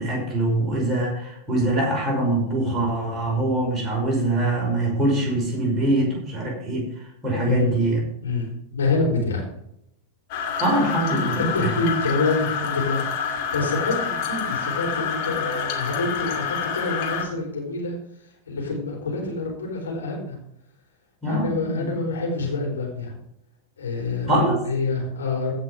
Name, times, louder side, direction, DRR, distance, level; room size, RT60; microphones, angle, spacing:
voice 1, 0.0-8.0 10.6-11.7 21.2-21.9 24.3-24.6, right 1 dB, 20° right, -2 dB, 5.6 m, -23 dB
voice 2, 7.4-7.7 8.2-9.5 11.5-20.4 21.2-23.2 23.8-25.5, left 3 dB, 70° left, -2 dB, 4.4 m, -27 dB
sound 1, 10.3-17.2, left 7 dB, 45° left, 2.6 m, -27 dB
16.0 x 6.1 x 5.0 m, 0.76 s
figure-of-eight pair, 90°, 0 cm